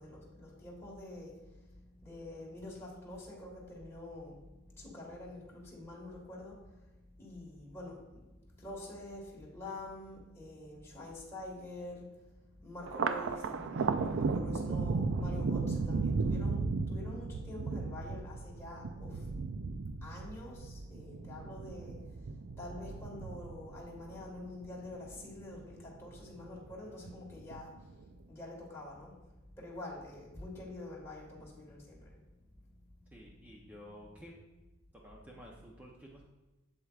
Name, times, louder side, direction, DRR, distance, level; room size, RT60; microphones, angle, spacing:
voice 1, 0.0-1.3 2.0-4.4 4.8-6.6 7.2-8.0 8.6-12.0 12.6-19.2 20.0-21.9 22.6-27.7 28.3-29.1 29.6-32.1, left 1 dB, 15° left, -4 dB, 1.6 m, -46 dB
Thunder, 12.9-25.5 25.9-26.7 27.1-27.9, right 4 dB, 60° right, 0.4 m, -35 dB
voice 2, 33.1-34.3 35.0-36.2, equal, 10° right, -3 dB, 0.7 m, -52 dB
7.9 x 7.2 x 2.4 m, 1.1 s
head